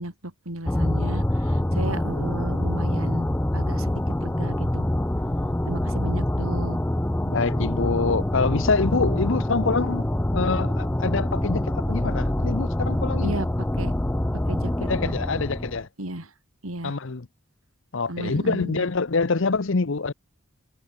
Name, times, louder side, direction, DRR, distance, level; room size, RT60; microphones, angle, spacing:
voice 1, 0.0-3.3 3.5-4.9 5.7-6.8 13.2-13.5 13.8-13.9 14.5-15.1 16.0-16.3 16.6-17.0 18.1-18.8, right 1 dB, 80° right, 4.3 m, -34 dB
sound 1, 0.7-15.8, left 1 dB, 10° left, 0.5 m, -25 dB
voice 2, 7.3-10.1 10.3-13.4 14.9-15.9 16.8-17.3 17.9-20.1, left 4 dB, 60° left, 0.8 m, -25 dB
head